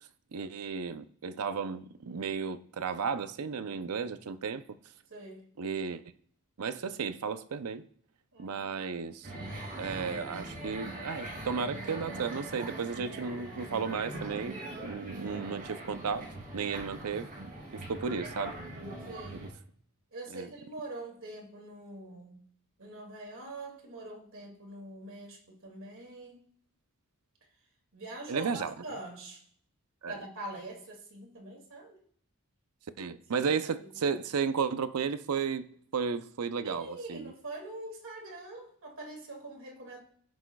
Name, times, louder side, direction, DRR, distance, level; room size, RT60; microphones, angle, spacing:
voice 1, 0.3-4.6 5.6-6.0 6.6-7.8 8.4-9.3 9.8-17.3 17.7-18.6 19.3-19.5 20.3-20.5 28.3-28.7 30.0-30.2 33.0-35.7 35.9-37.3, right 5 dB, 85° right, 0.6 m, -34 dB
voice 2, 5.1-5.4 8.3-8.9 9.4-9.7 15.1-15.5 19.1-19.5 20.1-22.4 22.8-26.4 27.9-29.4 30.1-32.0 33.1-33.5 33.8-33.9 36.6-40.0, right 2 dB, 60° right, 2.3 m, -44 dB
sound 1, 9.2-19.5, right 1 dB, 40° right, 2.7 m, -41 dB
15.5 x 6.2 x 2.3 m
head